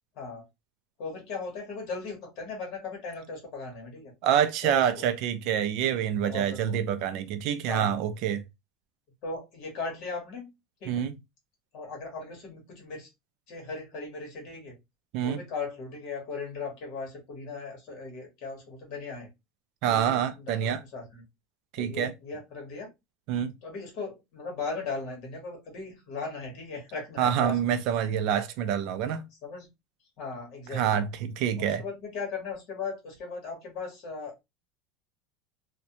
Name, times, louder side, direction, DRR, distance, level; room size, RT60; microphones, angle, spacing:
voice 1, 0.1-0.4 1.0-4.1 4.6-5.0 6.2-6.8 7.7-7.9 9.2-10.5 10.8-11.0 11.7-13.1 13.5-14.7 15.2-19.3 19.9-21.2 21.8-22.9 23.6-27.8 29.4-29.7 30.2-31.0 31.6-34.4, left 4 dB, 50° left, 1.2 m, -38 dB
voice 2, 4.2-8.4 10.9-11.1 15.1-15.4 19.8-20.8 21.7-22.1 23.3-23.5 27.2-29.2 30.7-31.8, right 9 dB, 50° right, 0.3 m, -27 dB
2.5 x 2.1 x 2.6 m
cardioid pair, 165°, 0 cm